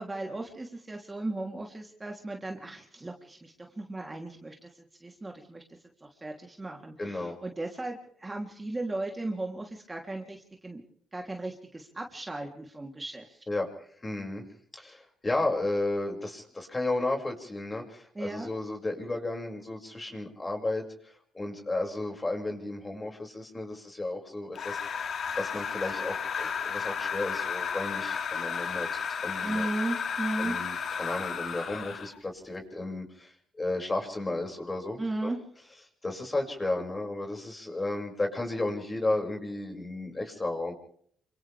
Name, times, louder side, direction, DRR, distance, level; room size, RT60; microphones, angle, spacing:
voice 1, 0.0-5.6 6.0-10.8 11.1-13.4 18.2-18.5 29.4-30.6 35.0-35.4, right 2 dB, 20° right, 1 dB, 3.3 m, -36 dB
voice 2, 7.0-7.4 13.5-14.4 14.7-25.0 25.3-29.7 30.4-35.3 36.0-40.7, left 2 dB, 20° left, 2 dB, 6.4 m, -33 dB
sound 1, 24.5-32.2, left 6 dB, 60° left, 2.4 m, -33 dB
28.5 x 26.5 x 3.5 m, 0.62 s
cardioid pair, 90°, 0 cm